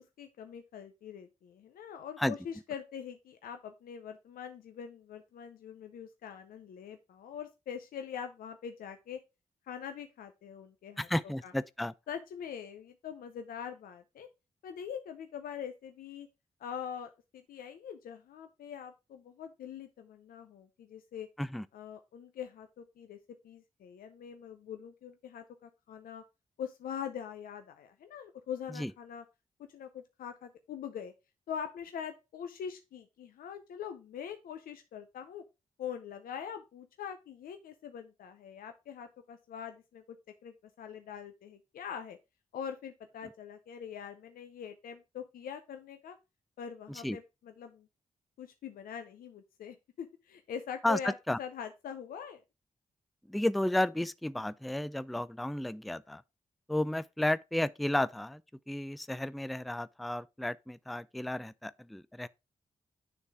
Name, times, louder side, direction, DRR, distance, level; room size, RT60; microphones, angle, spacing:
voice 1, 0.0-9.2 9.7-11.1 11.4-11.5 12.1-14.3 14.6-16.3 16.6-21.3 21.7-23.2 23.4-26.2 26.6-29.2 29.7-31.1 31.5-35.4 35.8-40.0 40.4-42.2 42.5-46.2 46.6-47.9 48.4-52.4, left 8 dB, 80° left, 0.5 m, -43 dB
voice 2, 11.0-11.9 21.4-21.7 28.7-28.9 46.9-47.2 50.8-51.4 53.3-56.2 56.7-58.4 58.7-62.3, left 1 dB, ahead, 0.3 m, -32 dB
9.7 x 3.3 x 3.4 m
supercardioid pair, 50°, 15 cm